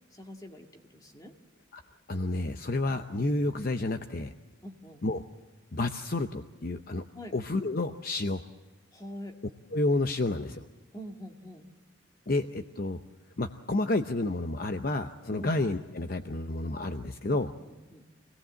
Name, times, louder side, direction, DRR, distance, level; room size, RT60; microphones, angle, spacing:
voice 1, 0.1-1.3 4.6-5.1 7.1-7.3 8.9-9.4 10.9-11.7 15.3-15.5 17.7-18.0, equal, 20° left, 3 dB, 1.9 m, -44 dB
voice 2, 2.1-4.3 5.0-5.2 5.7-7.0 7.3-8.4 9.7-10.6 12.3-13.0 13.4-17.5, left 2 dB, 45° left, 8 dB, 0.7 m, -30 dB
26.0 x 18.0 x 7.7 m, 1.2 s
head